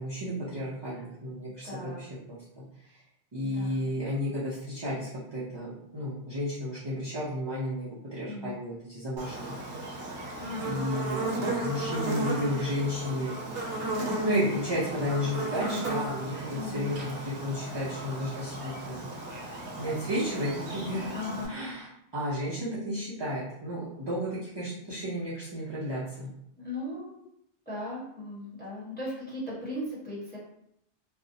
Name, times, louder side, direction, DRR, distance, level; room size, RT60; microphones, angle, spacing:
voice 1, 0.0-1.7 2.0-2.6 3.3-9.3 10.6-13.3 14.2-19.1 19.8-21.1 21.5-21.9 22.1-26.3, equal, 45° right, -9 dB, 0.3 m, -32 dB
voice 2, 1.6-2.1 3.4-4.0 8.2-8.6 10.4-10.9 16.5-16.9 21.1-21.5 26.6-27.2 27.7-30.4, left 1 dB, 10° left, -8 dB, 0.9 m, -38 dB
Buzz, 9.2-21.5, right 2 dB, 65° right, 0.8 m, -35 dB
2.6 x 2.0 x 2.6 m, 0.76 s
omnidirectional pair, 1.1 m